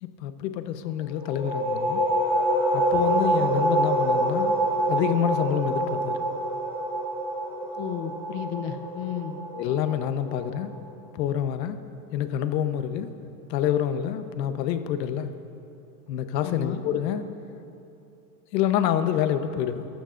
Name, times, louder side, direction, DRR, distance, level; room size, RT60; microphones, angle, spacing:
voice 1, 0.0-2.0 2.7-4.5 4.9-6.3 9.5-10.7 11.1-11.8 12.1-13.1 13.5-15.3 16.1-17.2 18.5-19.9, left 10 dB, 80° left, 9 dB, 1.0 m, -27 dB
sound 1, 1.1-10.5, right 1 dB, 10° right, 2.7 m, -26 dB
voice 2, 7.7-9.4 16.4-16.8, left 9 dB, 35° left, 7 dB, 0.6 m, -33 dB
23.0 x 12.5 x 2.6 m, 2.8 s
supercardioid pair, 160°, 49 cm